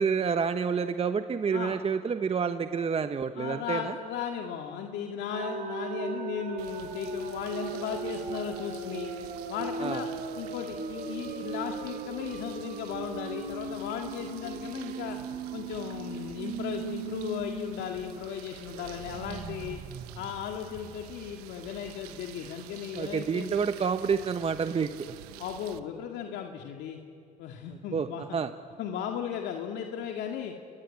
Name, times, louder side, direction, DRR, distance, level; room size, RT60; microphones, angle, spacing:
voice 1, 0.0-4.0 9.8-10.0 22.9-25.2 27.9-28.5, right 6 dB, 30° right, 9 dB, 1.1 m, -29 dB
voice 2, 3.4-9.1 9.5-10.1 10.4-15.2 15.5-19.8 20.2-23.6 25.4-27.0 27.4-28.2 28.8-30.5, left 8 dB, 65° left, 3 dB, 2.1 m, -36 dB
sound 1, 5.3-17.8 18.2-18.3 18.6-21.3, right 4 dB, 50° right, 3.1 m, -38 dB
sound 2, 6.6-25.8, right 14 dB, 85° right, 1.1 m, -49 dB
29.5 x 22.5 x 8.6 m, 2.4 s
supercardioid pair, 75°, 19 cm